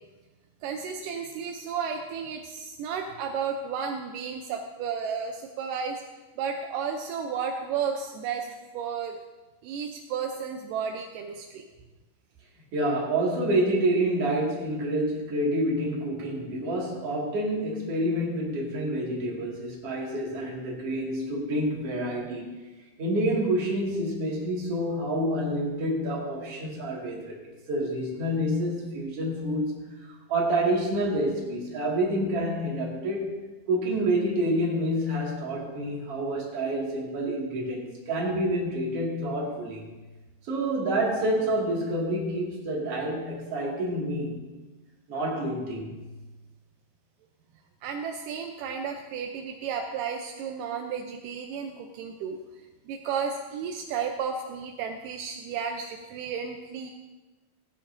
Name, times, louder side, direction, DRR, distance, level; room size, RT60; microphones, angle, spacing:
voice 1, 0.6-6.0 6.4-8.5 8.7-9.2 9.6-11.7 47.8-52.4 52.9-56.9, right 6 dB, 80° right, 3 dB, 1.9 m, -33 dB
voice 2, 12.7-22.6 23.0-27.4 27.7-33.3 33.7-39.9 40.4-44.5 45.1-45.9, right 1 dB, 45° right, -3 dB, 2.7 m, -28 dB
16.5 x 10.0 x 2.6 m, 1.2 s
omnidirectional pair, 4.5 m